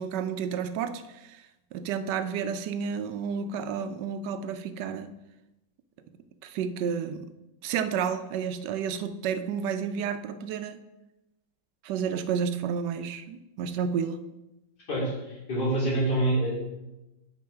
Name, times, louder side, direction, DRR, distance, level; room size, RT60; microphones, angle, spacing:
voice 1, 0.0-1.4 1.7-5.1 6.4-7.3 7.6-10.8 11.8-14.2, right 7 dB, 80° right, 10 dB, 1.2 m, -31 dB
voice 2, 14.9-16.5, right 2 dB, 70° left, -7 dB, 3.7 m, -26 dB
8.5 x 5.5 x 3.4 m, 0.97 s
omnidirectional pair, 1.9 m